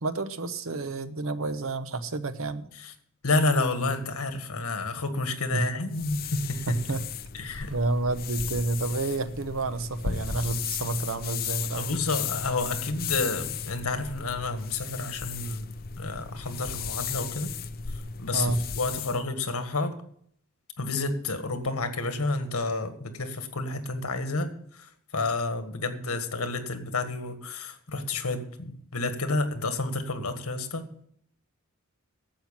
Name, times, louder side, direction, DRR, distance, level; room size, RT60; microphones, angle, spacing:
voice 1, 0.0-2.6 3.8-3.9 5.5-5.7 6.7-7.0 7.7-11.9 18.3-18.7, right 3 dB, 70° right, 11 dB, 0.9 m, -29 dB
voice 2, 3.2-6.8 7.3-7.7 11.7-15.7 16.0-17.5 18.2-18.5 18.8-19.9 20.8-30.9, left 3 dB, 80° left, 8 dB, 1.6 m, -30 dB
sound 1, 5.9-19.2, left 6 dB, 40° left, 0.6 m, -35 dB
11.5 x 7.7 x 7.3 m, 0.64 s
head